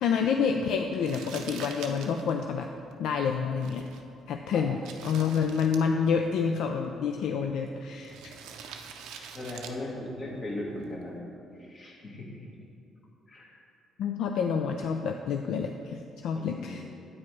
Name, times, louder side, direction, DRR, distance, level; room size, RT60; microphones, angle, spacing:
voice 1, 0.0-2.7 3.0-3.8 4.3-8.3 14.0-16.8, left 6 dB, 75° left, 4 dB, 0.3 m, -28 dB
Crumpling crinkling, 1.0-11.2, right 6 dB, 85° right, 0.5 m, -47 dB
voice 2, 9.3-11.2 11.6-12.5 13.3-13.5 16.3-16.8, left 1 dB, 45° left, -2 dB, 1.8 m, -38 dB
8.6 x 4.9 x 4.7 m, 2.6 s
supercardioid pair, 70°, 0 cm